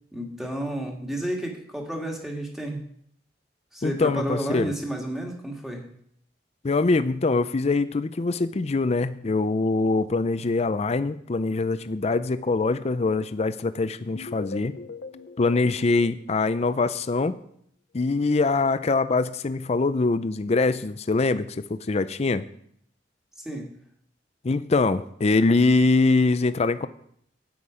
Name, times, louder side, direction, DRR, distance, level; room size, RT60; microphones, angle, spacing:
voice 1, 0.1-2.8 3.7-5.9 23.4-23.7, right 1 dB, ahead, 0 dB, 1.8 m, -31 dB
voice 2, 3.8-4.7 6.6-14.8 15.4-17.4 17.9-22.5 24.4-26.9, left 3 dB, 35° left, 13 dB, 0.5 m, -23 dB
sound 1, 14.1-17.1, left 4 dB, 70° left, 0.7 m, -42 dB
9.5 x 8.7 x 4.9 m, 0.67 s
head